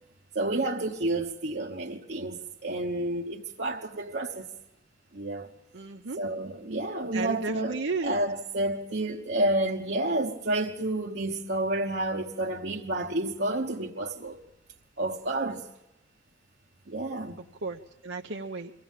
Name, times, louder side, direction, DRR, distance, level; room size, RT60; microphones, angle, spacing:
voice 1, 0.3-4.5 5.1-5.5 6.2-14.4 15.0-15.6 16.9-17.4, right 1 dB, 60° right, 1.2 m, -30 dB
voice 2, 5.7-6.2 7.1-8.1 17.6-18.7, right 3 dB, 80° right, 0.9 m, -33 dB
24.0 x 16.5 x 7.4 m
head